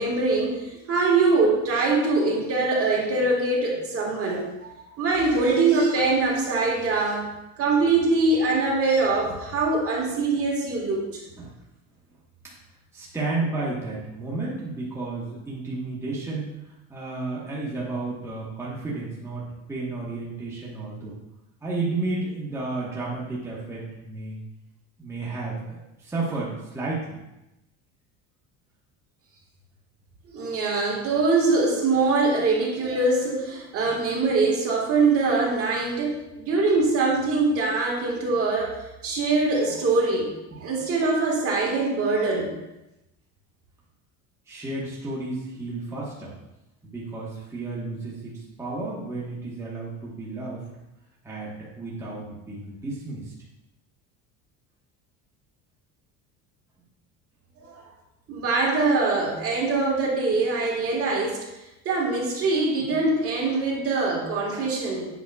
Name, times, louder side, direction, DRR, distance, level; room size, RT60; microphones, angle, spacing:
voice 1, 0.0-4.4 5.0-7.3 7.6-11.2 30.3-38.8 39.0-40.3 40.5-42.5 57.6-57.8 58.3-61.4 61.9-65.1, right 3 dB, 40° right, -3 dB, 1.7 m, -23 dB
voice 2, 12.9-16.5 16.9-21.2 21.6-24.4 25.0-27.2 40.5-40.7 44.5-46.3 46.8-50.6 51.2-53.3, right 3 dB, 5° right, -6 dB, 1.3 m, -32 dB
8.2 x 5.5 x 2.3 m, 0.94 s
cardioid pair, 130°, 37 cm